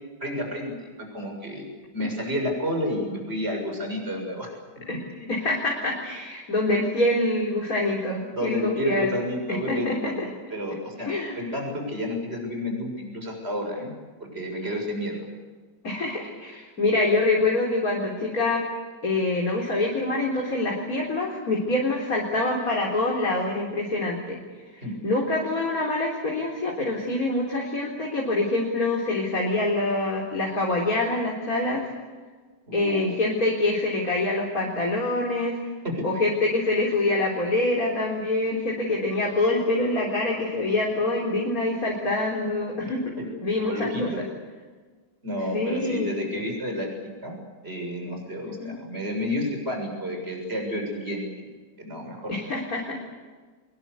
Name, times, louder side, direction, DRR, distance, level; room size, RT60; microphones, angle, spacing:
voice 1, 0.2-0.9 1.1-1.7 1.9-4.5 8.4-13.9 14.2-15.2 24.8-24.9 32.7-33.1 35.8-36.1 43.2-43.3 43.6-44.2 45.2-46.9 47.2-47.4 47.6-51.5 51.8-52.4, equal, 30° right, 2 dB, 7.2 m, -30 dB
voice 2, 5.3-9.2 9.5-10.3 11.1-11.5 15.8-18.6 19.0-24.4 25.0-31.9 32.7-35.6 36.0-43.0 43.4-44.1 45.5-46.1 48.4-48.8 52.3-53.0, left 2 dB, 45° left, -2 dB, 4.3 m, -25 dB
24.5 x 22.0 x 8.4 m, 1.4 s
omnidirectional pair, 2.1 m